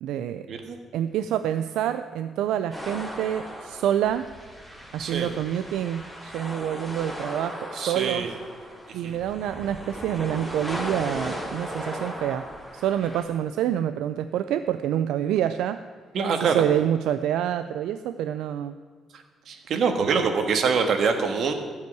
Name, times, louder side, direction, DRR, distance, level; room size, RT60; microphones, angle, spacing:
voice 1, 0.0-0.5 0.9-4.3 4.9-8.3 8.9-12.5 12.7-15.8 16.4-18.7, right 10 dB, 85° right, 11 dB, 0.4 m, -27 dB
sound 1, 2.7-13.2, equal, 5° left, 3.2 m, -37 dB
voice 2, 5.0-5.3 7.7-8.3 9.0-9.2 16.1-16.6 19.5-21.5, right 5 dB, 65° right, 6 dB, 1.6 m, -24 dB
13.5 x 5.6 x 9.2 m, 1.5 s
cardioid pair, 90°, 0 cm